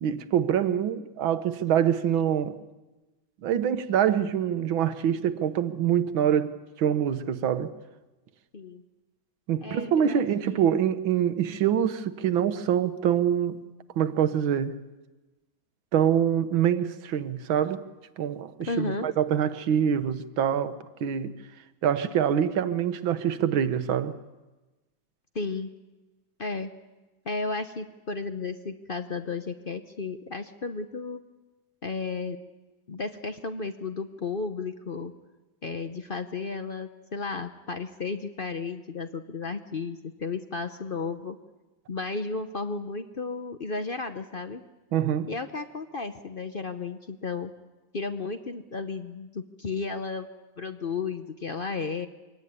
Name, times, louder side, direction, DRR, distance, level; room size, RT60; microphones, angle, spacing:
voice 1, 0.0-2.6 3.4-7.7 9.5-13.6 14.0-14.8 15.9-17.8 18.2-20.8 21.0-21.4 21.8-24.1 44.9-45.3, right 9 dB, 80° right, 1.8 m, -25 dB
voice 2, 9.6-10.7 18.6-19.1 25.3-25.7 26.4-26.7 27.3-31.2 31.8-32.4 32.9-35.1 35.6-41.4 41.9-44.6 45.3-47.5 47.9-50.3 50.6-52.1, left 4 dB, 50° left, 0.6 m, -33 dB
24.5 x 18.0 x 9.6 m
omnidirectional pair, 2.1 m